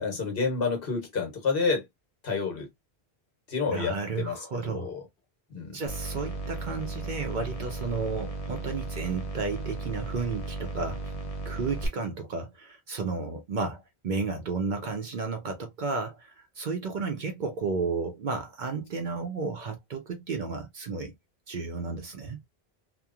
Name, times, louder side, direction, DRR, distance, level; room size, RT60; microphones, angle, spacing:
voice 1, 0.0-1.9 2.2-2.7 3.5-4.4 4.6-5.0 5.5-5.8, left 4 dB, 65° left, 1.1 m, -29 dB
voice 2, 3.7-4.9 5.7-11.1 11.4-21.1 21.5-22.4, right 4 dB, 55° right, 0.6 m, -33 dB
sound 1, 5.9-11.9, right 2 dB, 40° left, 0.6 m, -35 dB
2.9 x 2.1 x 2.2 m
omnidirectional pair, 1.1 m